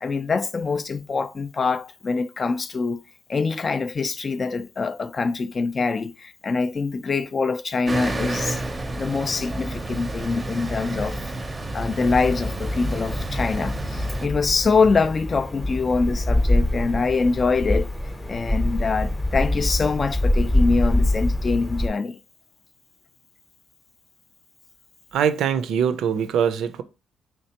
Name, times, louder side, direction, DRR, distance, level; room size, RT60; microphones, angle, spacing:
voice 1, 0.0-3.0 3.3-8.6 9.0-11.3 11.7-17.9 18.3-22.2, left 4 dB, 35° left, 0.3 m, -24 dB
sound 1, 7.9-14.3, right 2 dB, 20° right, 0.6 m, -30 dB
sound 2, 12.0-21.9, left 1 dB, 15° left, 0.7 m, -25 dB
voice 2, 25.1-26.8, right 8 dB, 80° right, 0.4 m, -22 dB
3.5 x 3.2 x 2.8 m
cardioid pair, 90°, 0 cm